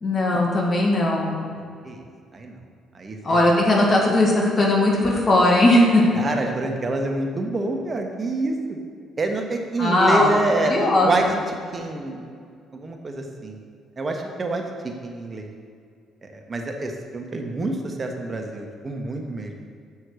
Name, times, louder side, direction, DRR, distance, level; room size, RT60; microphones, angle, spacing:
voice 1, 0.0-1.4 3.2-6.2 9.8-10.3 10.7-11.3, left 1 dB, 45° left, -2 dB, 2.1 m, -18 dB
voice 2, 1.6-2.1 2.3-2.6 2.9-3.4 6.1-8.8 9.2-12.3 12.7-13.6 14.0-15.5 16.2-19.6, right 2 dB, 35° right, 3 dB, 1.4 m, -27 dB
7.1 x 6.5 x 6.5 m, 2.2 s
hypercardioid pair, 55°, 0 cm